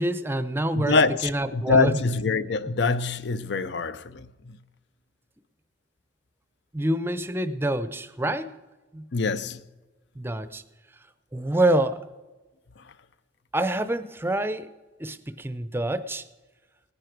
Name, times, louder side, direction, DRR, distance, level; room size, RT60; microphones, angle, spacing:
voice 1, 0.0-1.0 1.2-1.9 6.7-8.5 8.9-9.0 10.2-10.6 11.3-12.1 13.5-14.7 15.0-16.2, right 1 dB, 10° right, 0.6 m, -26 dB
voice 2, 0.7-4.6 9.1-9.6, left 4 dB, 60° left, 0.6 m, -25 dB
18.5 x 9.8 x 4.6 m
head